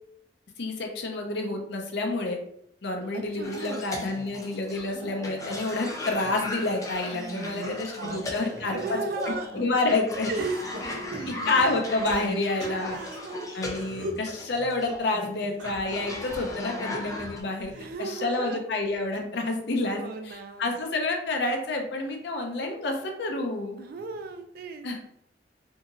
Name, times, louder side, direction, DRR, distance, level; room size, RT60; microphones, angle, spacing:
voice 1, 0.6-2.4 2.8-9.0 9.5-10.3 11.3-13.0 13.5-17.7 18.0-23.8 24.8-25.0, left 2 dB, 65° left, 3 dB, 0.6 m, -29 dB
voice 2, 3.1-3.8 7.3-9.6 10.3-11.7 12.6-13.6 17.7-18.6 19.9-20.8 23.8-24.9, right 3 dB, 55° right, 7 dB, 0.3 m, -36 dB
Cough, 3.4-17.4, left 1 dB, 20° left, 0.4 m, -38 dB
sound 1, 4.7-7.0 7.5-9.5 10.4-13.2 13.7-14.3 15.5-18.4 18.7-19.2 20.3-20.4, left 1 dB, 80° right, 1.0 m, -42 dB
2.8 x 2.7 x 2.4 m, 0.73 s
head